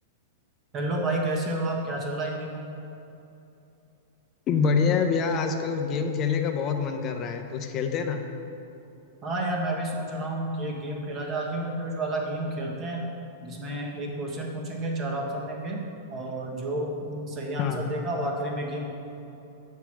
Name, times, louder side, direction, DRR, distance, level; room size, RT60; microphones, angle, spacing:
voice 1, 0.7-2.7 9.2-13.0 13.4-15.8 16.1-18.9, right 1 dB, 30° right, 0 dB, 1.3 m, -30 dB
voice 2, 4.5-8.2 17.6-17.8, left 5 dB, 35° left, 5 dB, 0.7 m, -26 dB
6.7 x 4.7 x 6.1 m, 2.8 s
hypercardioid pair, 140°, 0 cm